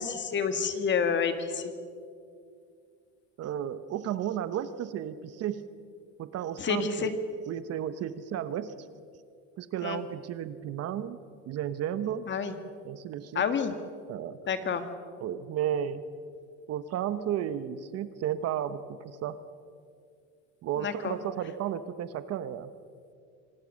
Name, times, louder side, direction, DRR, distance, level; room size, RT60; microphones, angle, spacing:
voice 1, 0.0-1.7 6.6-7.1 9.8-10.0 12.3-12.5 13.4-13.7 14.5-14.8 20.8-21.1, left 6 dB, 30° left, 9 dB, 2.0 m, -29 dB
voice 2, 3.4-5.6 6.2-7.1 7.5-8.9 9.6-11.2 11.5-12.3 12.8-13.4 14.1-14.4 15.2-16.1 16.7-19.4 20.6-22.7, right 10 dB, 45° right, 13 dB, 1.1 m, -33 dB
26.0 x 19.5 x 6.4 m, 2.3 s
supercardioid pair, 125°, 35 cm